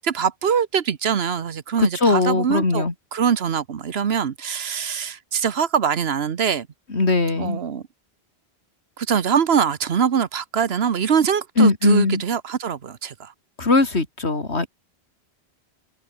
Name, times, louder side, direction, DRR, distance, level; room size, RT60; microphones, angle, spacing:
voice 1, 0.0-6.7 7.4-7.8 9.0-13.3, right 7 dB, 70° right, 1.2 m, -23 dB
voice 2, 1.8-2.9 6.9-7.6 11.6-12.2 13.6-14.7, left 3 dB, 80° left, 3.4 m, -19 dB
omnidirectional pair, 1.1 m